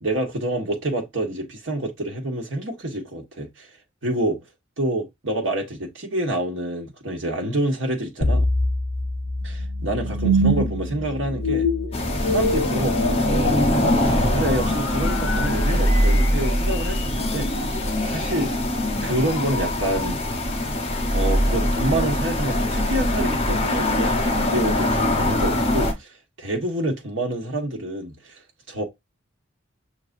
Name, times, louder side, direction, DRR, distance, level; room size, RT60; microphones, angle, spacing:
voice 1, 0.0-3.7 4.0-4.4 4.8-8.5 9.4-11.7 12.3-13.6 14.0-17.5 18.0-18.5 19.0-20.2 21.1-26.1 26.4-28.4 28.7-28.8, right 1 dB, 70° right, 1.4 m, -27 dB
sound 1, 8.2-17.3, left 1 dB, 70° left, 1.1 m, -26 dB
sound 2, 11.9-25.9, left 1 dB, 30° left, 1.0 m, -22 dB
5.9 x 3.4 x 2.6 m
head